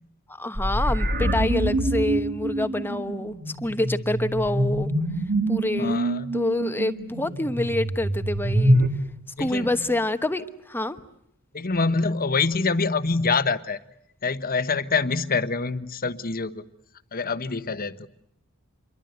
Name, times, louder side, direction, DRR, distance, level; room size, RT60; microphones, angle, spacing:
voice 1, 0.3-3.3 3.6-4.9 5.5-6.0 6.3-8.8 9.4-11.0, left 1 dB, 10° left, 9 dB, 1.1 m, -27 dB
sound 1, 0.5-8.9, right 1 dB, 50° right, 3.0 m, -25 dB
voice 2, 5.8-6.4 9.4-9.7 11.5-13.8 14.2-16.6 17.1-18.0, left 4 dB, 40° left, 11 dB, 1.2 m, -25 dB
27.0 x 23.0 x 8.0 m, 0.75 s
head